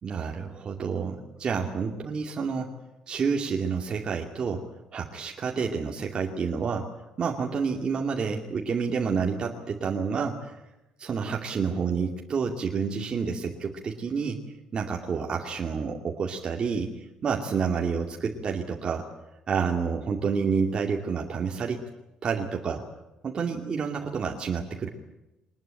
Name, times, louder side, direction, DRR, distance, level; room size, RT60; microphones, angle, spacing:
voice 1, 0.0-2.7 3.1-6.9 7.2-10.6 11.0-14.4 14.7-19.1 19.5-21.8 22.2-22.8 23.2-24.9, right 5 dB, 40° right, 1 dB, 2.5 m, -29 dB
23.5 x 20.5 x 9.0 m, 0.97 s
cardioid pair, 120°, 2 cm